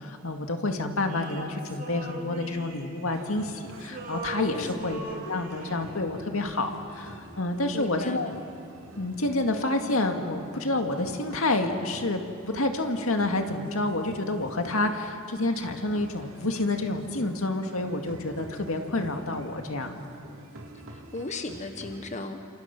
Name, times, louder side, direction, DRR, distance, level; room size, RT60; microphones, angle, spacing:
voice 1, 0.0-8.3 9.0-20.0, left 2 dB, 75° left, 4 dB, 2.1 m, -29 dB
Male singing, 1.1-3.5 3.8-5.9, right 2 dB, 40° right, 3.2 m, -40 dB
sound 1, 3.1-22.1, right 1 dB, 75° right, 3.0 m, -48 dB
voice 2, 7.7-8.3 21.1-22.4, left 2 dB, 35° left, 6 dB, 1.2 m, -36 dB
29.5 x 27.5 x 6.0 m, 2.4 s
head